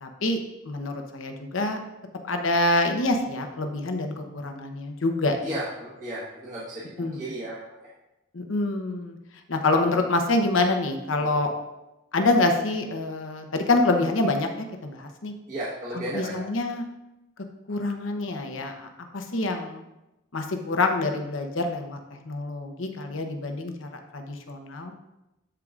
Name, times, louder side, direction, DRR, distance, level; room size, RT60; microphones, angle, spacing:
voice 1, 0.0-0.4 0.6-1.8 2.3-5.5 7.0-7.2 8.3-9.2 9.5-11.5 12.1-14.5 14.8-15.3 16.1-16.9 17.7-18.9 19.1-19.8 20.3-22.0 22.2-24.9, left 2 dB, 90° left, 5 dB, 0.9 m, -26 dB
voice 2, 5.4-7.9 11.1-11.4 15.5-16.4, right 1 dB, 40° right, -8 dB, 1.3 m, -35 dB
12.5 x 4.7 x 2.5 m, 0.96 s
head